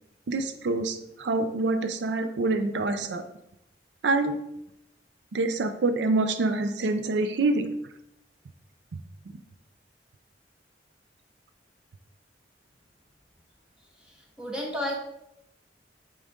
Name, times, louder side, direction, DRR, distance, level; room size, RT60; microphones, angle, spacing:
voice 1, 0.3-3.2 4.0-4.4 5.3-7.7, right 2 dB, 75° right, 9 dB, 0.4 m, -26 dB
voice 2, 14.1-15.0, left 1 dB, 5° right, -3 dB, 1.3 m, -32 dB
8.6 x 3.9 x 3.6 m, 0.84 s
head